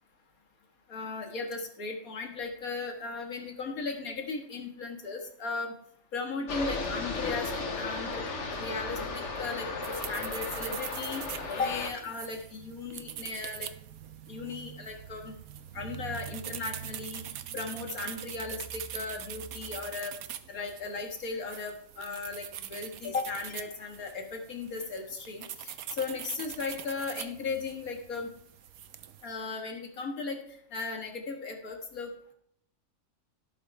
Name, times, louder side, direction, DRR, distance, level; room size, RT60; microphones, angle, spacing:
voice 1, 0.9-5.7 6.1-13.7 14.3-15.3 15.7-17.2 17.5-20.1 20.5-28.3 29.2-30.4 30.7-32.3, left 4 dB, 85° left, 3 dB, 2.2 m, -36 dB
sound 1, 6.5-11.9, left 3 dB, 55° left, 1.7 m, -35 dB
sound 2, 9.8-29.3, right 10 dB, 80° right, 1.2 m, -43 dB
16.5 x 8.6 x 3.4 m, 0.66 s
omnidirectional pair, 1.5 m